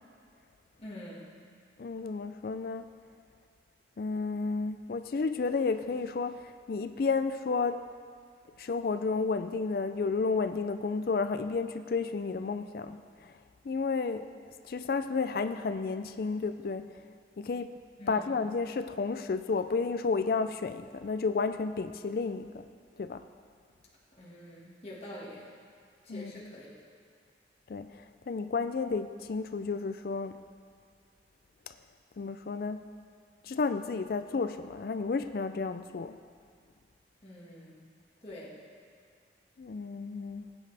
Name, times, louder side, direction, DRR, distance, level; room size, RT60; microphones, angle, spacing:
voice 1, 0.8-1.3 18.0-18.2 24.1-25.5 26.0-26.7 37.2-37.8 38.2-38.5, left 1 dB, 35° left, -6 dB, 1.8 m, -45 dB
voice 2, 1.8-2.9 4.0-7.8 8.6-13.4 13.6-17.0 17.4-17.7 18.1-22.7 23.0-23.2 26.1-26.5 27.7-30.4 31.7-31.8 32.2-32.8 33.4-36.2 39.6-40.5, left 4 dB, 55° left, 10 dB, 0.4 m, -32 dB
20.0 x 9.3 x 3.4 m, 2.2 s
head